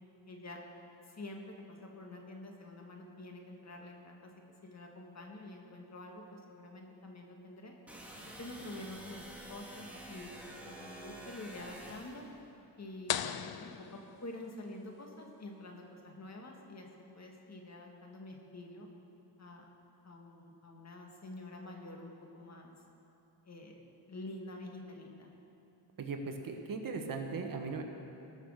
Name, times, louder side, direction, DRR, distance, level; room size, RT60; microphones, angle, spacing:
voice 1, 0.3-0.6 1.0-4.3 4.6-7.7 8.2-9.2 9.5-12.3 12.8-16.9 17.1-18.9 19.4-19.7 20.0-22.7 23.5-23.8 24.1-25.3, left 2 dB, 40° left, 1 dB, 1.9 m, -47 dB
sound 1, 7.9-12.3, right 1 dB, 5° right, 2.2 m, -49 dB
sound 2, 13.1-14.8, left 10 dB, 60° left, 0.6 m, -38 dB
voice 2, 26.0-27.8, right 4 dB, 50° right, 4 dB, 1.3 m, -38 dB
19.0 x 6.6 x 6.5 m, 2.9 s
cardioid pair, 100°, 43 cm